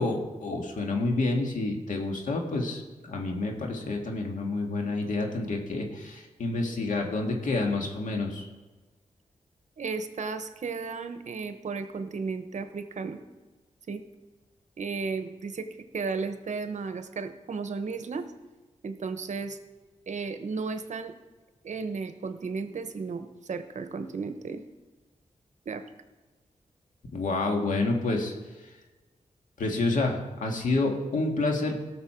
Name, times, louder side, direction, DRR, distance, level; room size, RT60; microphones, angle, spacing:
voice 1, 0.0-8.5 27.1-28.3 29.6-31.8, left 2 dB, 85° left, 1 dB, 1.9 m, -28 dB
voice 2, 9.8-13.2 13.9-14.0 14.8-15.7 15.9-18.3 18.8-19.6 20.1-21.1 21.6-24.6 25.7-25.8, right 4 dB, 65° right, 9 dB, 0.9 m, -34 dB
17.0 x 6.8 x 4.5 m, 1.2 s
wide cardioid pair, 105°, 13 cm